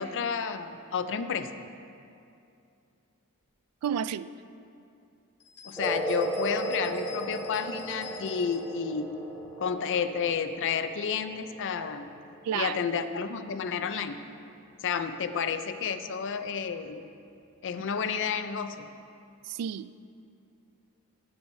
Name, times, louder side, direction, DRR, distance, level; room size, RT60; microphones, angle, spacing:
voice 1, 0.0-1.5 5.6-9.1 9.6-12.1 12.5-14.2 14.8-17.1 17.6-18.9, left 6 dB, 55° left, 9 dB, 0.5 m, -31 dB
voice 2, 3.8-4.3 12.4-12.8 19.5-20.0, right 8 dB, 90° right, 17 dB, 0.3 m, -31 dB
sound 1, 5.4-8.7, left 8 dB, 85° left, 1.6 m, -48 dB
sound 2, 5.8-12.8, right 1 dB, 5° left, 2.5 m, -36 dB
16.0 x 8.6 x 2.7 m, 2.6 s
head